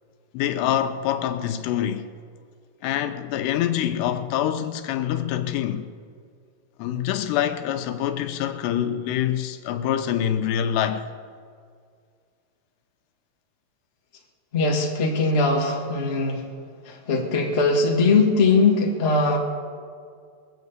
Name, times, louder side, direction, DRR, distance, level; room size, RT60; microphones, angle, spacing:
voice 1, 0.3-2.1 2.8-5.9 6.8-11.0, left 10 dB, 90° left, 3.0 m, -25 dB
voice 2, 14.5-16.4 16.8-19.4, left 3 dB, 70° left, 0.5 m, -20 dB
21.5 x 7.3 x 8.1 m
omnidirectional pair, 4.7 m